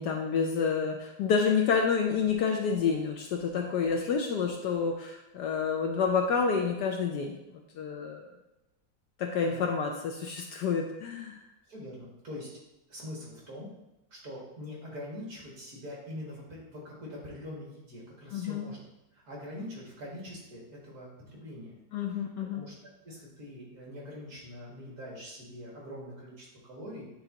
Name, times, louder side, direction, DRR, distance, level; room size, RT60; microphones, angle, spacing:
voice 1, 0.0-8.2 9.2-11.4 18.3-18.7 21.9-22.7, left 5 dB, 70° left, 2 dB, 1.1 m, -29 dB
voice 2, 11.7-12.5 12.9-13.7 14.1-18.8 19.2-21.8 22.5-27.1, left 1 dB, 50° right, -4 dB, 2.4 m, -43 dB
9.0 x 4.0 x 2.9 m, 0.95 s
omnidirectional pair, 2.1 m